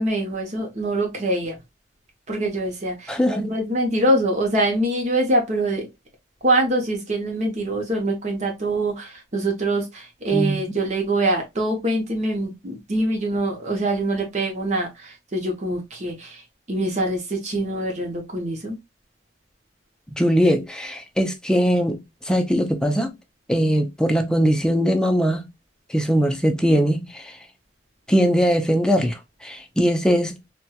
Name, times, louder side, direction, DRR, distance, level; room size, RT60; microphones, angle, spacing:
voice 1, 0.0-1.6 2.3-5.9 6.4-16.4 16.7-18.8, right 1 dB, 40° right, 0.7 m, -24 dB
voice 2, 3.1-3.5 10.3-10.6 20.2-22.0 22.2-23.1 23.5-25.5 25.9-27.4 28.1-30.4, equal, 5° left, 0.4 m, -20 dB
4.2 x 2.2 x 2.3 m
head